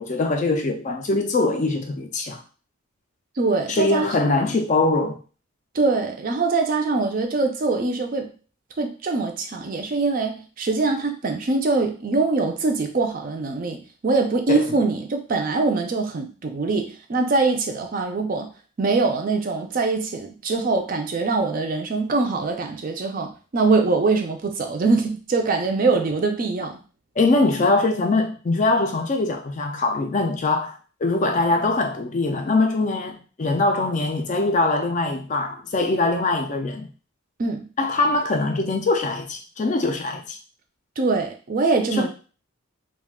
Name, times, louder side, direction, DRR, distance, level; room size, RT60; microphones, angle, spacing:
voice 1, 0.0-2.4 3.7-5.2 14.5-14.7 27.2-36.9 37.8-40.4 41.9-42.1, left 2 dB, 35° left, 0.3 m, -22 dB
voice 2, 3.4-4.5 5.7-8.3 8.8-18.5 18.8-26.8 37.4-37.7 41.0-42.1, right 3 dB, 40° right, 0.4 m, -23 dB
2.4 x 2.2 x 3.5 m
head